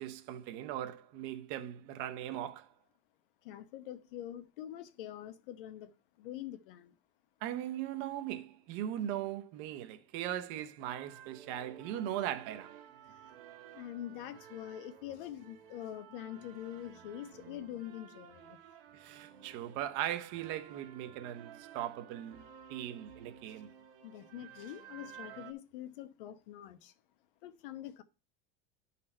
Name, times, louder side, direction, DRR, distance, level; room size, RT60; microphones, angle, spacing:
voice 1, 0.0-2.7 7.4-12.8 18.9-23.7, right 11 dB, 40° right, 0.7 m, -39 dB
voice 2, 3.4-7.0 13.0-13.3 13.7-18.6 23.5-23.6 24.0-26.9 27.4-28.0, left 12 dB, 65° left, 1.0 m, -45 dB
sound 1, 10.8-25.5, right 9 dB, 70° right, 1.4 m, -54 dB
11.0 x 4.2 x 4.3 m
supercardioid pair, 180°, 29 cm